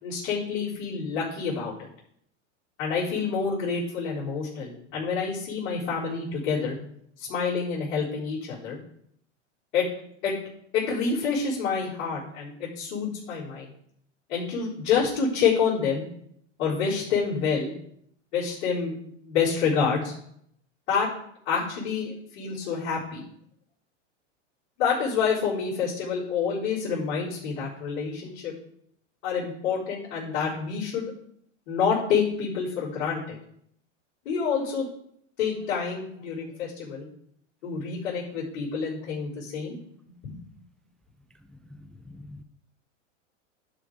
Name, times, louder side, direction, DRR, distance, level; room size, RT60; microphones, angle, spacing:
voice 1, 0.0-1.9 2.8-6.8 7.2-8.8 9.7-9.9 10.2-10.3 10.7-13.7 14.3-16.0 16.6-17.7 18.3-18.9 19.3-20.1 20.9-21.1 21.4-23.2 24.8-28.5 29.2-31.1 31.7-33.4 34.2-34.8 35.4-37.1 37.6-39.8 40.2-40.4, left 6 dB, 65° left, -10 dB, 4.4 m, -27 dB
voice 2, 41.7-42.4, left 2 dB, ahead, 8 dB, 0.3 m, -45 dB
11.5 x 5.1 x 5.1 m, 0.70 s
hypercardioid pair, 110°, 37 cm